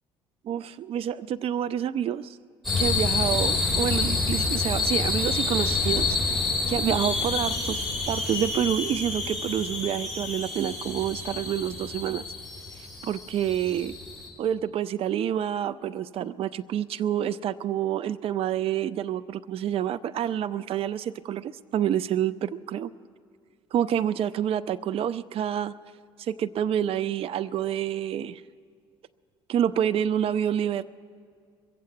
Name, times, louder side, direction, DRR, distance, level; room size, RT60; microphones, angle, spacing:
voice 1, 0.4-2.4 2.8-6.4 6.7-12.2 13.0-13.9 14.4-22.9 23.7-25.7 26.2-28.4 29.5-30.8, right 10 dB, 45° right, 15 dB, 0.4 m, -28 dB
sound 1, 2.6-14.3, left 3 dB, ahead, 5.6 m, -28 dB
22.5 x 7.7 x 8.1 m, 2.2 s
hypercardioid pair, 60°, 14 cm